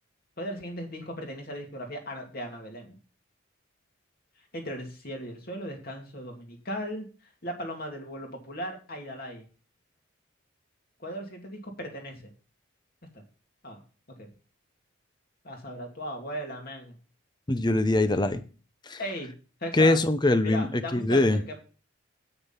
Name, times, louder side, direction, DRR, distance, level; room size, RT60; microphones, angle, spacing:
voice 1, 0.4-3.0 4.5-9.4 11.0-12.3 13.1-13.2 13.6-13.8 14.2-14.3 15.4-17.0 19.0-19.3 19.6-20.0 20.4-21.6, equal, 45° left, 2 dB, 2.6 m, -37 dB
voice 2, 17.5-18.4 18.9-19.0 19.7-21.4, left 2 dB, 20° left, 11 dB, 0.7 m, -23 dB
9.0 x 6.7 x 5.8 m, 0.36 s
head